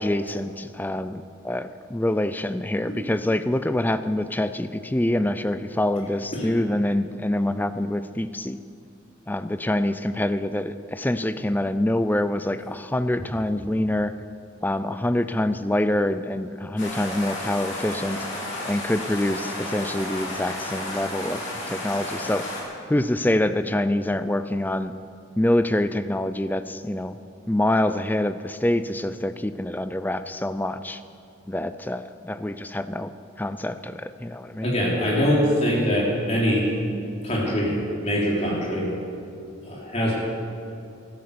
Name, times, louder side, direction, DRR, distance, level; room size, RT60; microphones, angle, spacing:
voice 1, 0.0-8.6 9.3-14.1 14.6-18.2 18.7-21.4 21.7-22.5 22.9-24.9 25.4-27.2 27.5-31.0 31.5-33.1 33.4-34.8, left 1 dB, 10° left, 12 dB, 0.4 m, -25 dB
sound 1, 16.8-22.6, left 1 dB, 70° left, 3.6 m, -32 dB
voice 2, 34.6-36.7 37.2-38.9 39.7-40.1, equal, 35° left, -4 dB, 3.6 m, -23 dB
13.5 x 12.0 x 6.8 m, 2.6 s
head